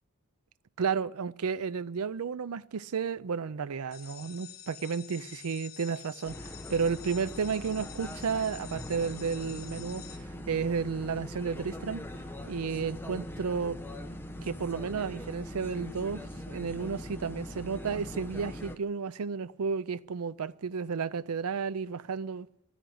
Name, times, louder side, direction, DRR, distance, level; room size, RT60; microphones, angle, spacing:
voice 1, 0.8-10.0 10.5-12.0 12.5-13.8 14.4-22.5, right 5 dB, 90° right, 0.5 m, -32 dB
sound 1, 3.9-10.2, left 10 dB, 45° left, 1.5 m, -48 dB
sound 2, 6.3-18.8, equal, 10° left, 0.9 m, -41 dB
13.0 x 10.0 x 7.8 m
head